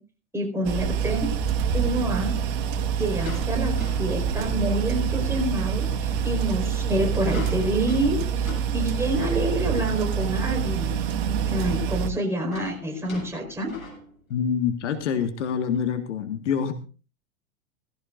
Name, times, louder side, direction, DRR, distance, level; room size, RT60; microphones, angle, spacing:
voice 1, 0.3-1.3 1.7-2.3 3.0-11.0 11.5-13.7, right 1 dB, 5° right, 1 dB, 4.8 m, -27 dB
sound 1, 0.6-0.7 2.6-5.2 5.7-5.8 6.7-9.5 10.1-10.2 10.4-10.5 11.8-14.6 14.9-15.1 15.7-15.8, left 3 dB, 75° left, 7.9 m, -42 dB
sound 2, 0.6-12.1, right 7 dB, 40° right, 1.8 m, -26 dB
voice 2, 14.3-16.7, left 7 dB, 60° left, 8 dB, 1.8 m, -26 dB
18.0 x 16.0 x 2.6 m, 0.36 s
figure-of-eight pair, 100°, 41 cm